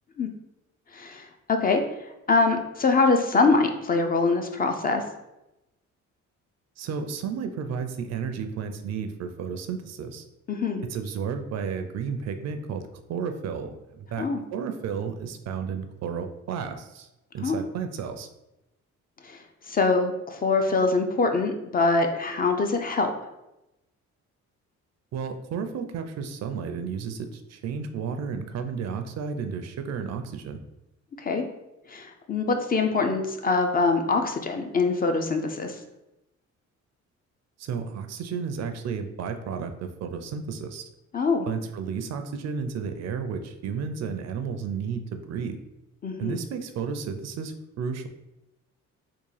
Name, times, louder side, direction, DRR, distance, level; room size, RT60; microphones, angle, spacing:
voice 1, 0.9-1.8 2.3-5.0 10.5-10.8 14.2-14.4 17.4-17.6 19.2-19.4 19.7-23.1 31.2-31.4 31.9-35.7 41.1-41.5 46.0-46.4, left 3 dB, 30° left, 5 dB, 0.4 m, -24 dB
voice 2, 6.8-10.2 10.9-12.8 13.1-14.3 14.5-17.1 17.3-18.3 25.1-30.6 37.6-40.9 41.5-45.6 46.2-48.1, right 6 dB, 60° right, 7 dB, 0.4 m, -32 dB
3.6 x 2.4 x 3.2 m, 0.93 s
cardioid pair, 90°, 30 cm